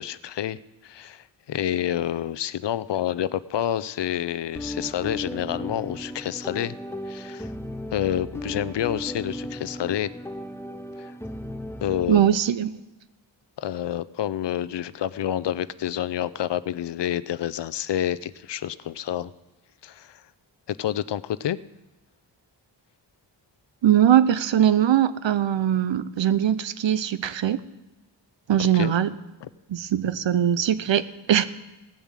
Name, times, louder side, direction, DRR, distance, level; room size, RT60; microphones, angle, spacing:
voice 1, 0.0-6.7 7.1-7.5 7.9-10.1 11.0-11.1 11.8-12.3 13.6-19.3 19.8-20.2 20.7-21.6 28.6-28.9 29.4-29.5, left 11 dB, 70° left, 17 dB, 0.6 m, -28 dB
sound 1, 4.5-12.2, left 1 dB, 5° left, 0.7 m, -36 dB
voice 2, 12.1-12.8 23.8-27.6 28.5-29.1 29.7-31.4, right 10 dB, 80° right, 14 dB, 0.7 m, -21 dB
17.0 x 7.1 x 7.4 m, 1.0 s
cardioid pair, 70°, 44 cm